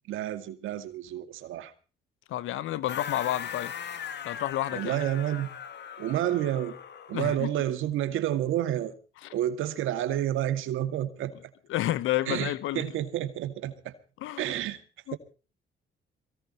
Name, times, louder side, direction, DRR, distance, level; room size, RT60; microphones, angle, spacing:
voice 1, 0.1-1.7 4.7-5.5 6.0-6.7 7.1-8.9 9.3-11.3 12.3-13.9 14.4-14.8, right 12 dB, 90° right, 2.3 m, -29 dB
voice 2, 2.3-3.7 4.2-5.0 7.1-7.5 9.2-9.3 11.7-12.9 14.2-14.5 15.1-15.2, left 14 dB, 90° left, 1.1 m, -30 dB
sound 1, 2.9-7.3, left 8 dB, 60° left, 2.0 m, -39 dB
23.0 x 18.0 x 3.0 m
cardioid pair, 90°, 20 cm